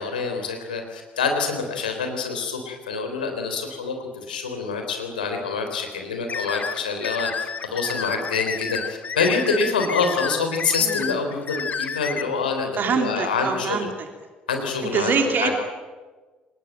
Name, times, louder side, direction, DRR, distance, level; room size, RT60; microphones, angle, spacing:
voice 1, 0.0-13.9 14.5-15.5, left 4 dB, 80° left, 4 dB, 3.6 m, -26 dB
sound 1, 6.3-12.2, left 6 dB, 35° left, 1.8 m, -30 dB
voice 2, 10.8-11.2 12.8-14.1 14.8-15.5, right 5 dB, 45° right, 5 dB, 3.2 m, -25 dB
27.5 x 19.0 x 9.2 m, 1.3 s
figure-of-eight pair, 50°, 5 cm